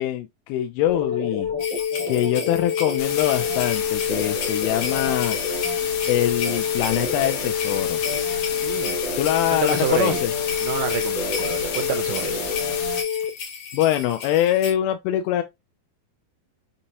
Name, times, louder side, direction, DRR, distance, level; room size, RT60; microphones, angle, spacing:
voice 1, 0.0-1.5 2.1-5.4 6.1-8.0 9.2-10.3 13.7-15.4, left 12 dB, 90° left, 2.5 m, -23 dB
sound 1, 0.9-13.3, left 6 dB, 35° right, 0.3 m, -27 dB
sound 2, 1.6-14.7, left 6 dB, 55° left, 2.1 m, -34 dB
sound 3, 3.0-13.0, left 7 dB, 70° left, 2.4 m, -32 dB
voice 2, 8.6-9.0 9.5-10.2 10.6-12.5, right 11 dB, 85° right, 1.9 m, -28 dB
6.3 x 2.9 x 2.7 m
omnidirectional pair, 4.3 m